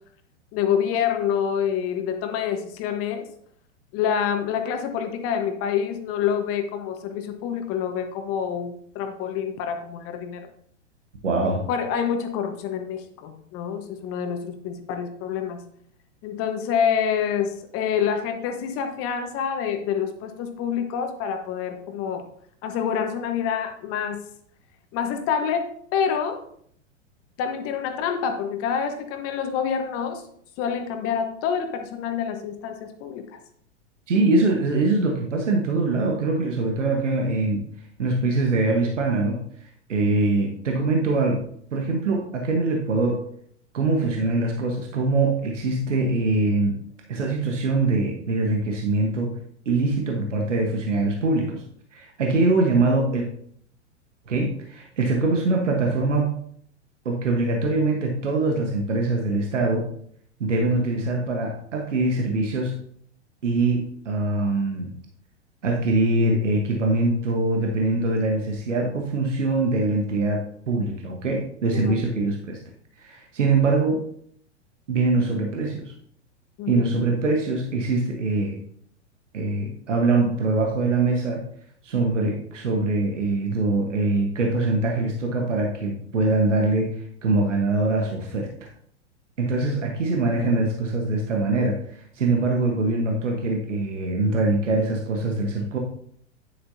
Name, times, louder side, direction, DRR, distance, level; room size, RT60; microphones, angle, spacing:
voice 1, 0.5-3.3 3.9-10.5 11.4-15.6 16.2-22.3 22.6-24.2 24.9-26.4 27.4-30.2 30.6-33.4 71.7-72.0 76.6-76.8, left 7 dB, 40° left, 6 dB, 1.3 m, -27 dB
voice 2, 11.2-11.6 34.1-37.6 38.0-39.4 39.9-41.4 41.7-43.2 43.7-46.8 47.1-49.4 49.6-51.6 51.9-53.3 54.3-56.3 57.0-59.9 60.4-62.8 63.4-64.9 65.6-72.6 73.0-74.0 74.9-75.9 76.7-78.6 79.3-81.4 81.8-88.7 89.4-95.8, right 2 dB, 80° right, 1 dB, 1.4 m, -23 dB
9.5 x 7.9 x 2.8 m, 0.65 s
hypercardioid pair, 105°, 36 cm